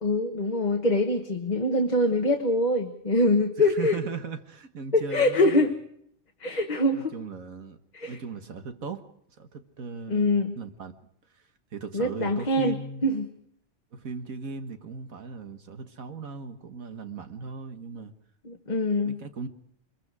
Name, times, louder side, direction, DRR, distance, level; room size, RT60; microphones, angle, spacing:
voice 1, 0.0-4.0 4.9-5.7 6.4-7.1 7.9-8.2 10.1-10.5 11.9-12.7 13.0-13.3 18.4-19.2, left 1 dB, 35° left, 3 dB, 1.4 m, -24 dB
voice 2, 3.6-5.7 6.9-7.8 8.1-9.1 9.4-10.3 10.6-11.1 11.3-13.1 13.9-18.1 19.0-19.5, right 5 dB, 85° right, 7 dB, 1.9 m, -38 dB
25.0 x 22.0 x 4.9 m, 0.69 s
omnidirectional pair, 1.4 m